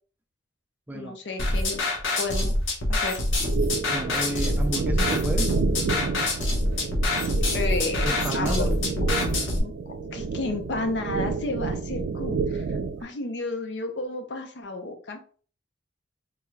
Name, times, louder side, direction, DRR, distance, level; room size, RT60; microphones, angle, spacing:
voice 1, 0.9-1.9 2.2-2.5 2.9-3.2 7.5-9.1 9.6-15.2, left 2 dB, 65° left, 0.6 m, -32 dB
sound 1, 1.4-9.6, left 1 dB, 90° left, 0.9 m, -25 dB
sound 2, 3.4-13.0, right 4 dB, 90° right, 0.3 m, -30 dB
voice 2, 3.9-5.5 8.0-8.7, right 1 dB, 10° right, 0.3 m, -31 dB
3.7 x 2.3 x 3.1 m
head